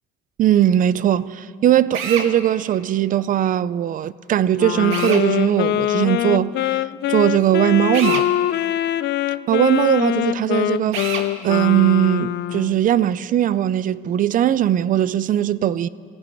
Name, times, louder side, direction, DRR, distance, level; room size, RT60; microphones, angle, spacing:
voice 1, 0.4-8.3 9.5-11.1 11.4-15.9, right 11 dB, 40° right, 0.4 m, -19 dB
Drill, 1.9-2.3 4.9-5.3 7.9-8.3 10.9-11.3, right 7 dB, 70° right, 1.9 m, -27 dB
Wind instrument woodwind instrument, 4.6-12.8, left 13 dB, 55° left, 0.5 m, -23 dB
20.5 x 15.5 x 9.3 m
cardioid pair, 145°, 21 cm